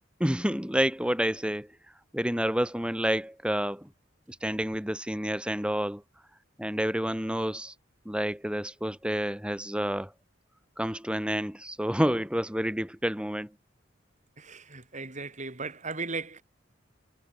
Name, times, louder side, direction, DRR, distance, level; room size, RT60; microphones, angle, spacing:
voice 1, 0.2-1.7 2.1-3.9 4.3-6.0 6.6-7.7 8.1-10.1 10.8-13.5, equal, 5° right, 4.2 m, -29 dB
voice 2, 14.4-16.4, right 3 dB, 40° right, 6.5 m, -37 dB
head